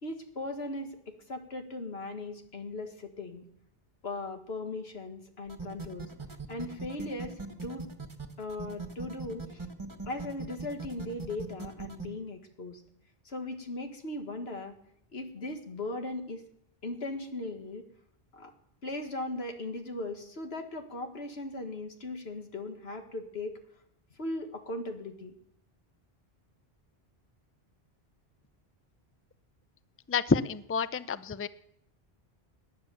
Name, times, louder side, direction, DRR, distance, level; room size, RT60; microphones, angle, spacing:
voice 1, 0.0-3.4 4.0-6.1 6.5-7.4 7.6-7.9 8.4-9.6 10.1-12.8 13.3-14.8 15.1-16.4 16.8-17.9 18.3-18.5 18.8-23.5 24.2-25.3, left 2 dB, 80° left, 6 dB, 2.0 m, -38 dB
sound 1, 5.5-12.1, right 3 dB, 30° right, 1.4 m, -40 dB
voice 2, 30.1-31.5, left 5 dB, 20° left, 15 dB, 0.4 m, -28 dB
18.5 x 10.0 x 7.0 m, 0.74 s
omnidirectional pair, 1.0 m